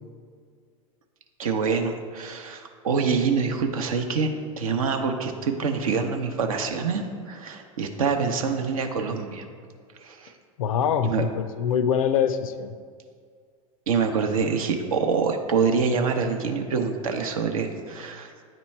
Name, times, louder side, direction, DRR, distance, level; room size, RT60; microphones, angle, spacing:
voice 1, 1.4-9.4 10.0-10.3 11.0-11.2 13.9-18.4, right 5 dB, 80° right, 5 dB, 0.7 m, -26 dB
voice 2, 10.6-12.7, left 8 dB, 80° left, 11 dB, 0.4 m, -24 dB
8.9 x 3.0 x 4.3 m, 2.1 s
hypercardioid pair, 90°, 18 cm